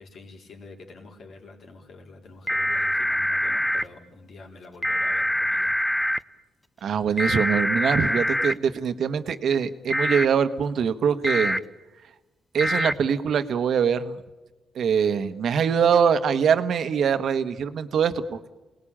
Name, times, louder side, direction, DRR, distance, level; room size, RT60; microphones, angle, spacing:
voice 1, 0.0-5.7, left 3 dB, 65° left, 1 dB, 4.4 m, -46 dB
sound 1, 2.5-3.8 4.8-6.2 7.2-8.5 9.9-10.2 11.2-11.6 12.6-12.9, equal, 5° left, 0.7 m, -24 dB
voice 2, 6.8-11.6 12.5-14.2 14.7-18.5, right 7 dB, 70° right, 10 dB, 1.4 m, -23 dB
28.0 x 19.5 x 8.8 m, 1.1 s
cardioid pair, 80°, 0 cm